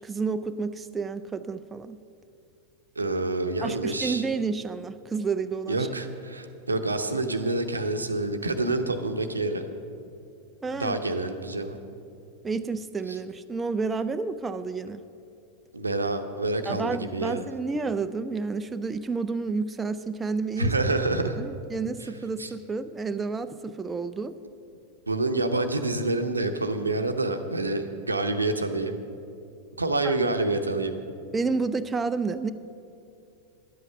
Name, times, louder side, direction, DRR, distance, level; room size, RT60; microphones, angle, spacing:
voice 1, 0.0-2.0 3.6-5.9 10.6-11.0 12.4-15.0 16.7-20.7 21.1-24.3 30.0-30.1 31.3-32.5, right 4 dB, 15° right, 10 dB, 0.3 m, -30 dB
voice 2, 3.0-4.2 5.7-9.7 10.7-11.8 13.1-13.2 15.7-17.4 20.6-21.4 22.4-22.5 25.1-28.9 29.8-30.9, right 2 dB, 80° right, 7 dB, 0.7 m, -27 dB
11.0 x 8.1 x 6.7 m, 2.6 s
figure-of-eight pair, 90°, 0 cm